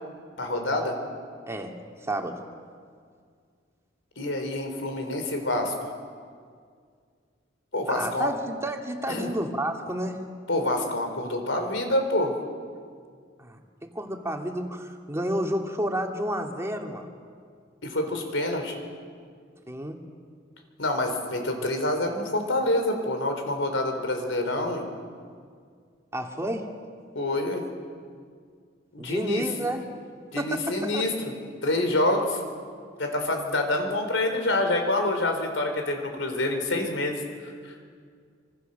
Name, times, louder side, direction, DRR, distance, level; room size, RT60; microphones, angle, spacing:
voice 1, 0.4-1.0 4.2-5.7 7.7-8.3 9.1-9.3 10.5-12.3 17.8-18.7 20.8-24.8 27.1-27.6 28.9-29.4 30.3-31.3 31.6-32.4 33.0-37.8, left 1 dB, 85° left, 5 dB, 4.1 m, -27 dB
voice 2, 1.5-2.4 7.9-10.2 13.4-17.1 19.7-20.0 26.1-26.7 29.0-29.8 30.4-31.0, right 1 dB, 15° right, 2 dB, 2.2 m, -31 dB
26.5 x 25.5 x 6.8 m, 2.1 s
head